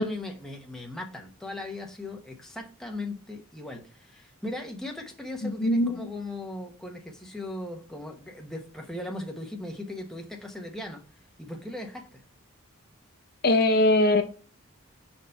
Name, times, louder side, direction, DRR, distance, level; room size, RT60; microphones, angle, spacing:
voice 1, 0.0-11.0 11.4-12.2, left 2 dB, ahead, 0.9 m, -38 dB
voice 2, 5.4-6.1 13.4-14.2, left 1 dB, 45° left, 0.6 m, -21 dB
5.0 x 4.4 x 5.4 m
head